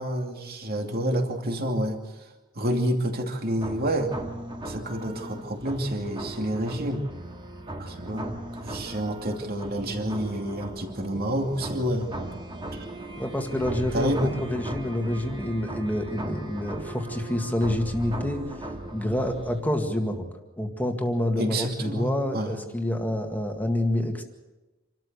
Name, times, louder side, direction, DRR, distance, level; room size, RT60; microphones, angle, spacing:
voice 1, 0.0-2.0 2.6-4.1 4.6-7.0 7.8-8.3 8.6-12.1 12.7-12.9 13.9-14.4 21.4-22.5, right 1 dB, 45° right, 4 dB, 2.6 m, -28 dB
sound 1, 3.6-19.6, right 1 dB, 25° right, 2.1 m, -38 dB
voice 2, 13.2-20.3 20.6-24.2, left 1 dB, 10° left, 4 dB, 1.9 m, -28 dB
27.0 x 13.5 x 8.2 m, 1.1 s
head